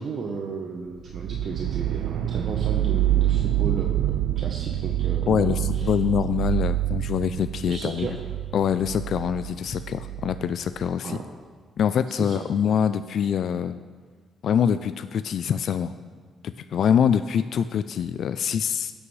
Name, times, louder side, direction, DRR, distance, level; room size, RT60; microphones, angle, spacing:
voice 1, 0.0-5.9 7.7-8.2 11.0-11.2 12.1-12.4, right 4 dB, 55° right, 1 dB, 0.9 m, -34 dB
sound 1, 1.1-11.0, right 12 dB, 85° right, 0.3 m, -27 dB
voice 2, 5.3-8.1 8.5-11.2 11.8-13.8 14.4-16.0 16.4-18.9, left 8 dB, 65° left, 11 dB, 0.3 m, -24 dB
16.0 x 8.4 x 3.2 m, 1.5 s
cardioid pair, 90°, 0 cm